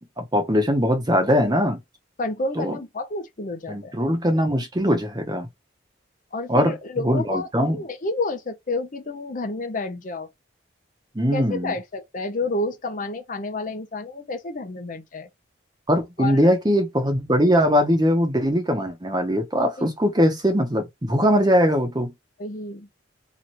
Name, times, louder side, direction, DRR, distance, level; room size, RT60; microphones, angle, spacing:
voice 1, 0.2-1.8 2.6-2.8 3.7-5.5 6.5-7.8 11.1-11.7 15.9-22.1, equal, 20° right, 0.9 m, -21 dB
voice 2, 2.2-4.0 6.3-10.3 11.3-15.3 16.2-16.5 19.8-19.9 22.4-22.9, left 2 dB, 45° left, 0.7 m, -30 dB
3.0 x 2.5 x 4.2 m
head